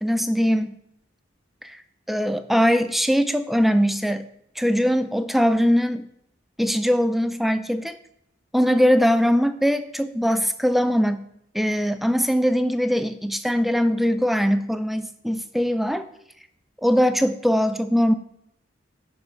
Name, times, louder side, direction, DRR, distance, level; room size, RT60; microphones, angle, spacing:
voice 1, 0.0-0.7 1.6-1.8 2.1-4.3 4.6-6.1 6.6-8.0 8.5-11.2 11.5-16.1 16.8-18.1, equal, ahead, 10 dB, 0.4 m, -21 dB
10.5 x 5.4 x 5.2 m, 0.74 s
head